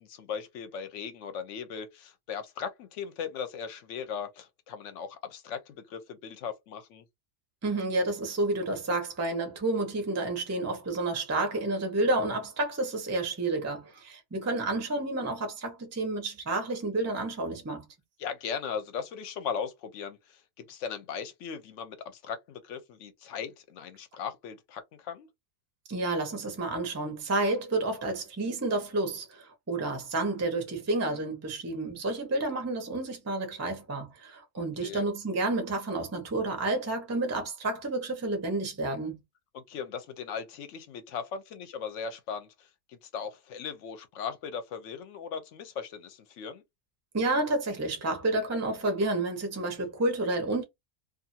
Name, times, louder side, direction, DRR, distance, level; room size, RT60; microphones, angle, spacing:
voice 1, 0.0-7.0 18.2-25.3 34.6-35.1 39.5-46.6, left 6 dB, 65° left, 0.8 m, -38 dB
voice 2, 7.6-17.9 25.9-39.2 47.1-50.6, right 2 dB, 20° right, 0.4 m, -30 dB
2.6 x 2.4 x 2.6 m
omnidirectional pair, 1.6 m